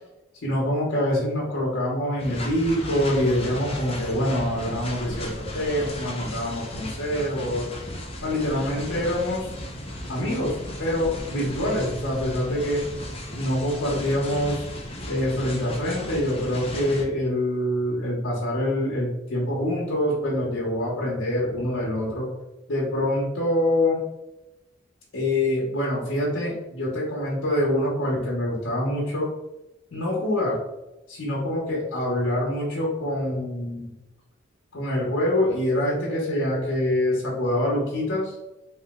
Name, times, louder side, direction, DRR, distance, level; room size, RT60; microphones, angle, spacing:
voice 1, 0.4-7.7 8.2-9.5 10.1-10.5 10.8-12.8 13.3-14.6 15.1-22.3 22.7-24.0 25.1-29.3 29.9-30.6 31.1-33.9 34.7-38.3, left 1 dB, 80° left, -5 dB, 1.0 m, -25 dB
sound 1, 2.2-17.0, left 1 dB, 30° left, 0.6 m, -35 dB
3.1 x 2.9 x 3.6 m, 0.97 s
head